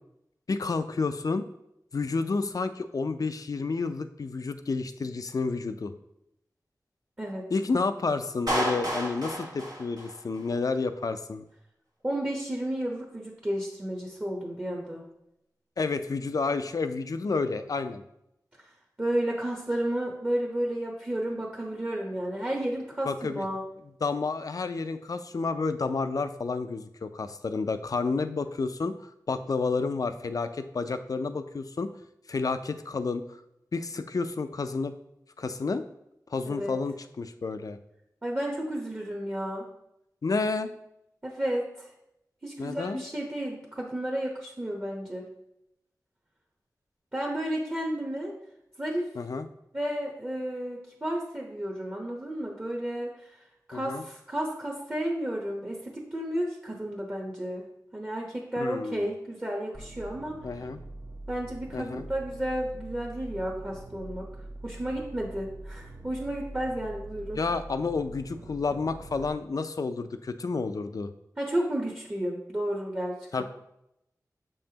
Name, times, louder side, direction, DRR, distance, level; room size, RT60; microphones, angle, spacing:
voice 1, 0.5-1.5 1.9-5.9 7.5-11.4 15.8-18.0 23.1-23.5 24.0-31.9 32.3-33.4 33.7-34.9 35.4-35.8 36.3-37.8 40.2-40.7 42.6-43.0 49.2-49.5 53.7-54.0 58.6-59.1 60.4-60.8 61.7-62.1 67.3-71.1 73.3-73.4, left 4 dB, 60° left, 10 dB, 0.4 m, -30 dB
Clapping, 8.5-10.5, right 1 dB, 75° right, 1.4 m, -31 dB
voice 2, 12.0-15.1 19.0-23.6 36.5-36.7 38.2-39.6 41.2-41.9 42.4-45.3 47.1-48.3 48.8-49.0 49.7-53.3 53.7-57.7 57.9-60.4 61.3-64.3 64.6-67.4 71.4-73.4, right 1 dB, 25° right, -1 dB, 0.9 m, -32 dB
sound 1, 59.7-69.3, right 2 dB, 50° right, 0.8 m, -43 dB
6.9 x 5.4 x 2.9 m, 0.83 s
wide cardioid pair, 75°, 7 cm